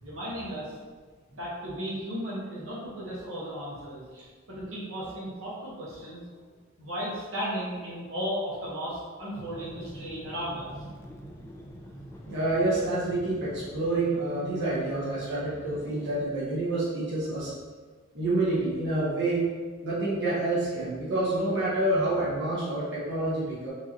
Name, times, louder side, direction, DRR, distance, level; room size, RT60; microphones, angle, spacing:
voice 1, 0.0-0.8 1.3-6.4 6.8-10.7, equal, 80° right, -7 dB, 1.3 m, -35 dB
sound 1, 9.3-16.3, equal, 10° left, 0.4 m, -44 dB
voice 2, 12.3-17.5 18.1-19.5 19.8-23.7, right 2 dB, 55° right, -9 dB, 1.2 m, -28 dB
4.6 x 2.9 x 3.0 m, 1.5 s
head